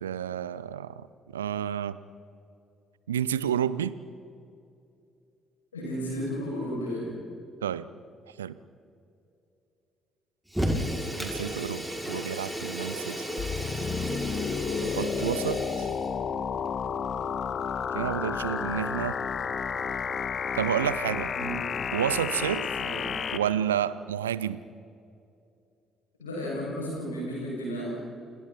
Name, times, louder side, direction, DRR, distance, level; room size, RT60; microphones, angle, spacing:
voice 1, 0.0-1.1 1.3-2.0 3.1-3.9 7.6-7.9 8.4-8.6 11.1-13.3 14.8-15.9 17.9-19.2 20.5-21.3 21.9-22.7 23.3-24.6, right 10 dB, 80° right, 18 dB, 0.6 m, -30 dB
voice 2, 5.7-7.1 21.3-21.6 22.8-23.0 26.2-28.0, equal, 80° left, -4 dB, 7.2 m, -33 dB
Fire, 10.5-16.1, equal, 5° right, 6.4 m, -33 dB
sound 1, 13.4-23.4, left 7 dB, 45° left, 1.5 m, -31 dB
29.5 x 29.5 x 4.4 m, 2.6 s
figure-of-eight pair, 45°, 0 cm